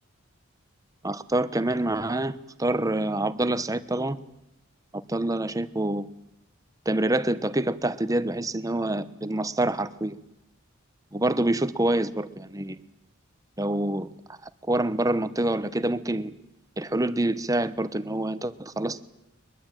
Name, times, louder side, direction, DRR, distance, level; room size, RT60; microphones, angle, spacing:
voice 1, 1.0-4.2 5.1-6.1 6.9-10.2 11.1-12.8 13.6-14.1 14.7-16.3 16.8-19.0, right 1 dB, 15° right, 13 dB, 1.0 m, -26 dB
23.0 x 21.5 x 9.1 m, 0.88 s
head